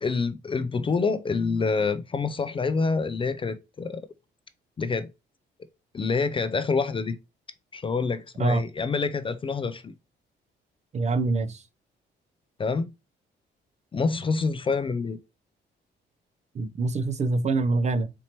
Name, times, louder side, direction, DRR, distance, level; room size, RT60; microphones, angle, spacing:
voice 1, 0.0-4.0 4.8-5.1 5.9-7.2 7.7-9.9 12.6-12.9 13.9-15.2, left 4 dB, 25° left, 0.3 m, -27 dB
voice 2, 10.9-11.6 16.5-18.1, right 3 dB, 35° right, 0.4 m, -25 dB
4.3 x 2.8 x 2.9 m
cardioid pair, 90°, 20 cm